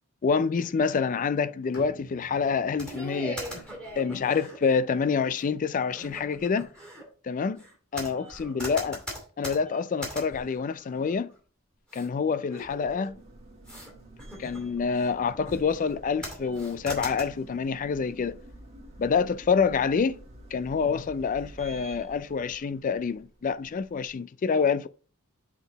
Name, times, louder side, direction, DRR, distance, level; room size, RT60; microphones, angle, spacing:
voice 1, 0.2-3.5 4.0-6.7 7.2-7.6 7.9-9.0 9.4-11.3 11.9-13.2 14.4-18.4 19.0-20.2 20.5-24.9, left 5 dB, 35° left, 0.3 m, -27 dB
Bowed string instrument, 1.7-5.7, right 1 dB, 65° left, 2.8 m, -51 dB
sound 1, 2.8-4.8 5.4-5.5 5.9-7.0 7.6-11.4 11.9-12.1 12.5-13.2 13.7-13.9 14.2-15.1 15.5-16.0 16.2-17.2, equal, 5° left, 2.5 m, -40 dB
sound 2, 13.1-24.1, right 1 dB, 30° right, 1.4 m, -49 dB
7.1 x 4.0 x 4.0 m
head